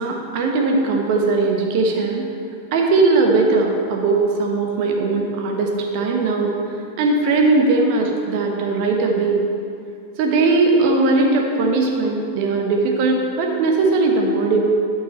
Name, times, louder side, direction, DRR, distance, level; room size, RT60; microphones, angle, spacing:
voice 1, 0.0-2.3 2.7-6.6 7.0-9.4 10.2-14.6, right 3 dB, 45° right, 1 dB, 1.3 m, -19 dB
11.5 x 5.5 x 4.4 m, 2.5 s
figure-of-eight pair, 90°, 0 cm